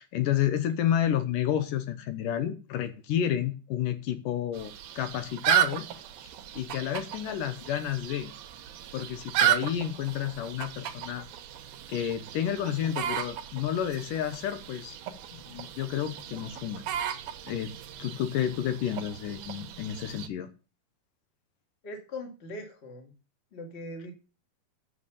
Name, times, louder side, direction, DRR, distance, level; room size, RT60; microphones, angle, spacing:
voice 1, 0.0-5.9 6.5-8.3 8.9-11.2 11.9-15.0 15.3-16.8 17.5-17.7 18.0-20.5, left 10 dB, 75° left, 10 dB, 2.2 m, -30 dB
sound 1, 4.5-20.3, right 11 dB, 75° right, 2.8 m, -34 dB
voice 2, 21.8-23.1 23.5-24.1, left 1 dB, 25° left, 4 dB, 1.7 m, -40 dB
8.9 x 6.9 x 7.0 m, 0.34 s
omnidirectional pair, 4.4 m